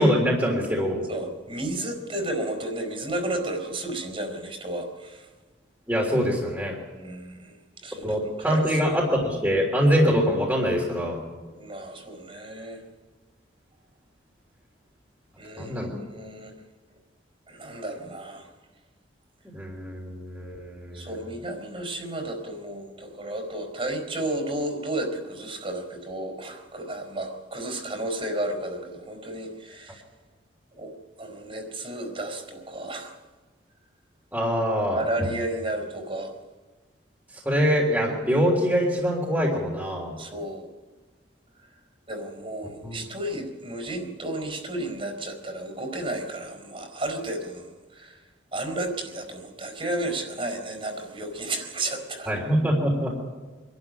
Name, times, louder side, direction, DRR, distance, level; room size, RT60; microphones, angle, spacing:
voice 1, 0.0-1.1 5.9-6.8 8.0-11.2 15.6-16.0 19.5-21.1 34.3-35.0 37.5-40.2 42.8-43.0 52.3-53.1, equal, 10° right, -2 dB, 3.4 m, -24 dB
voice 2, 1.1-5.3 6.9-7.6 7.8-9.0 11.5-12.8 15.4-16.5 17.5-18.5 20.9-30.0 30.7-30.9 31.2-33.2 34.9-36.3 40.2-40.7 42.1-48.2 48.5-52.3, right 1 dB, 30° right, 4 dB, 4.5 m, -32 dB
25.0 x 12.5 x 9.8 m, 1.3 s
head